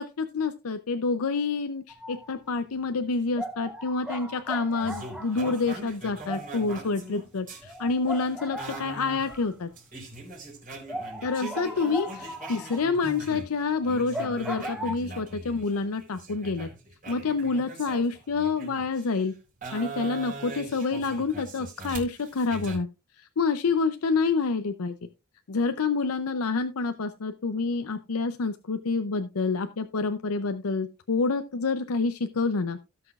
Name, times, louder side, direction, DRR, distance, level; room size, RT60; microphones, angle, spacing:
voice 1, 0.0-9.7 11.2-16.7 17.1-19.3 19.7-22.9 23.2-24.9 25.5-32.8, left 4 dB, 75° left, 9 dB, 0.6 m, -28 dB
sound 1, 1.9-2.3 2.7-2.8 3.3-9.7 10.1-10.2 10.5-10.6 10.9-14.9, equal, 5° right, 0.7 m, -38 dB
sound 2, 4.8-13.5 13.8-19.1 19.6-22.8, right 2 dB, 40° right, 3.9 m, -41 dB
17.5 x 6.0 x 2.4 m, 0.29 s
head